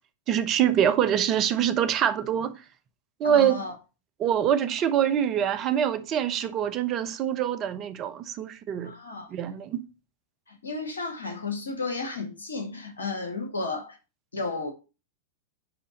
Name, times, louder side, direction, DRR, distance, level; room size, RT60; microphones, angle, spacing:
voice 1, 0.3-2.6 3.2-3.6 4.2-8.9 9.3-9.8, right 9 dB, 40° right, 1.0 m, -25 dB
voice 2, 3.2-3.7 8.8-9.3 10.5-14.0 14.3-14.7, left 3 dB, 85° left, 2.1 m, -33 dB
9.8 x 3.9 x 5.2 m
hypercardioid pair, 100°, 0 cm